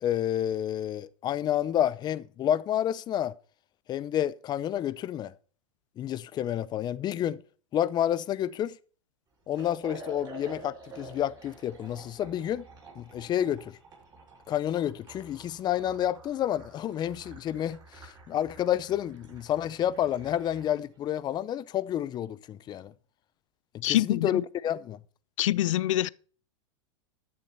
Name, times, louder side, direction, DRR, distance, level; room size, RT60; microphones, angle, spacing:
voice 1, 0.0-3.3 3.9-5.3 6.0-7.4 7.7-8.8 9.5-12.6 13.0-13.8 14.5-22.9 23.7-25.0, left 11 dB, 25° left, 0.6 m, -29 dB
Liquid, 9.5-20.8, right 2 dB, 25° right, 6.7 m, -49 dB
voice 2, 23.8-24.4 25.4-26.1, left 14 dB, 80° left, 0.5 m, -25 dB
11.5 x 7.1 x 5.6 m
supercardioid pair, 130°, 16 cm